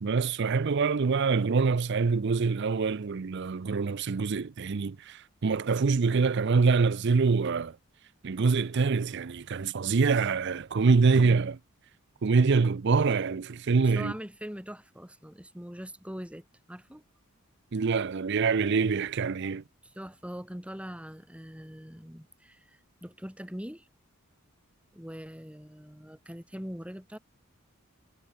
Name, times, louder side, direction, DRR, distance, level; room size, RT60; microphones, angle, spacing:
voice 1, 0.0-7.7 8.2-11.6 12.2-14.1 17.7-19.6, right 4 dB, 55° right, 0.5 m, -25 dB
voice 2, 13.9-17.0 19.8-23.9 24.9-27.2, equal, 5° right, 3.1 m, -42 dB
head